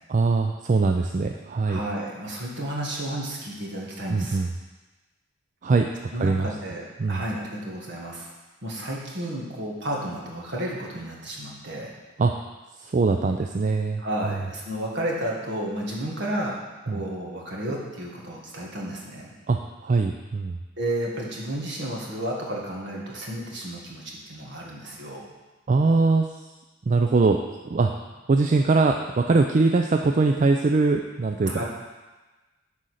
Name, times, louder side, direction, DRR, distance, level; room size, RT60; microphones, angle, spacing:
voice 1, 0.1-1.8 4.1-4.5 5.6-5.9 6.2-6.5 7.0-7.2 12.2-12.3 12.8-14.4 16.9-17.0 19.5-20.6 25.7-26.4 26.9-27.4 27.7-27.9 28.3-31.6, right 3 dB, 40° right, 4 dB, 0.4 m, -22 dB
voice 2, 1.7-4.4 6.1-8.3 8.6-11.9 14.0-16.5 16.9-19.3 20.8-25.2 31.4-31.6, right 1 dB, 60° right, -2 dB, 1.8 m, -32 dB
9.7 x 3.9 x 6.4 m, 1.2 s
head